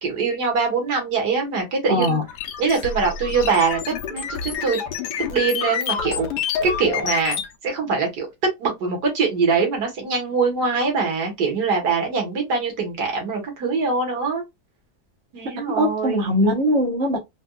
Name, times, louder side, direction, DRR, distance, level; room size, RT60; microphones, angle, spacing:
voice 1, 0.0-2.2 2.6-4.8 5.3-6.3 6.6-8.3 8.6-14.4 15.3-16.2, right 4 dB, 60° right, 1.8 m, -23 dB
voice 2, 1.9-2.2 15.8-17.2, equal, 45° right, 1.1 m, -20 dB
sound 1, 2.0-7.5, left 7 dB, 70° left, 1.1 m, -28 dB
4.2 x 2.3 x 2.3 m
omnidirectional pair, 2.0 m